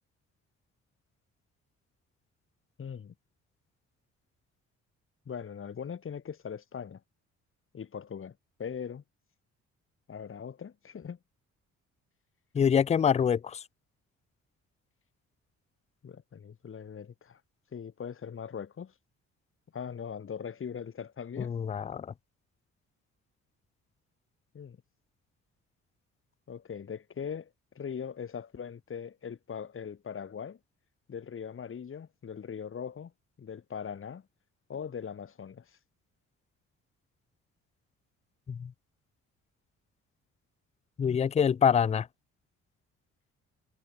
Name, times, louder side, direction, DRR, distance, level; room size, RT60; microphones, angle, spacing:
voice 1, 2.8-3.1 5.3-7.0 7.7-9.0 10.1-11.2 16.0-17.4 17.7-18.9 19.7-21.5 24.5-24.8 26.5-27.5 27.7-30.6 31.1-33.1 33.4-34.2 34.7-35.7 41.0-41.3, left 7 dB, 45° left, 2.5 m, -40 dB
voice 2, 12.5-13.6 21.4-22.1 38.5-38.7 41.0-42.1, left 7 dB, 25° left, 0.4 m, -25 dB
cardioid pair, 90°, 30 cm